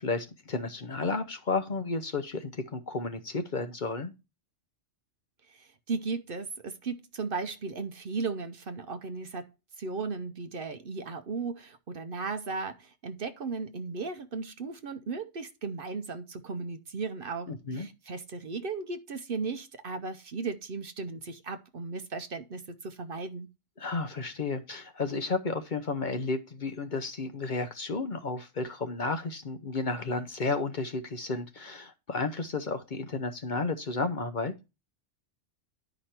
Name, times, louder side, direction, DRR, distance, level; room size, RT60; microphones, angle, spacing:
voice 1, 0.0-4.1 17.5-17.9 23.8-34.5, left 3 dB, 45° left, 0.8 m, -32 dB
voice 2, 5.5-9.5 9.8-23.5, right 4 dB, 55° right, 0.8 m, -36 dB
10.5 x 5.1 x 4.3 m
omnidirectional pair, 1.2 m